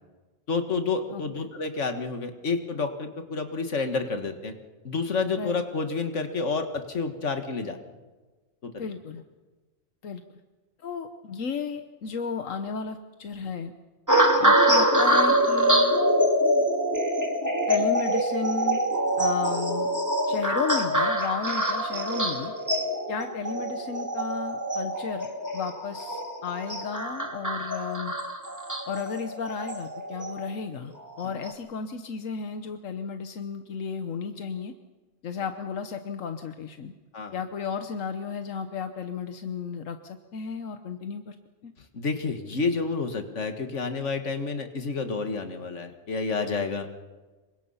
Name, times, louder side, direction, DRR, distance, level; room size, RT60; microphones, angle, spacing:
voice 1, 0.5-4.5 4.8-7.8 8.6-8.9 37.1-37.4 41.9-46.9, left 4 dB, 65° left, 7 dB, 2.1 m, -29 dB
voice 2, 1.1-1.5 5.4-5.6 8.8-9.2 10.0-10.2 10.8-13.7 14.4-16.0 17.7-18.8 19.2-19.9 20.3-22.5 23.1-25.3 25.5-28.1 28.9-34.7 35.2-36.9 37.3-41.4 41.6-41.7, left 6 dB, 85° left, 8 dB, 1.4 m, -33 dB
sound 1, 14.1-30.5 31.2-31.5, right 1 dB, 15° right, 2.6 m, -25 dB
27.5 x 24.0 x 5.7 m, 1.3 s
omnidirectional pair, 1.3 m